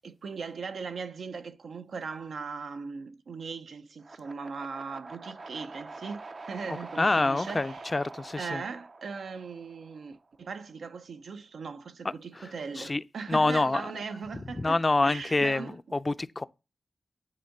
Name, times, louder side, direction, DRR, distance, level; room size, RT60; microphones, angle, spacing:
voice 1, 0.0-7.8 8.4-15.8, right 5 dB, 80° right, 0.8 m, -39 dB
sound 1, 4.0-10.1, right 3 dB, 45° right, 0.5 m, -45 dB
voice 2, 6.7-8.6 12.0-14.0 14.5-16.5, left 2 dB, 30° left, 0.4 m, -27 dB
9.8 x 3.6 x 6.6 m
wide cardioid pair, 90°, 0 cm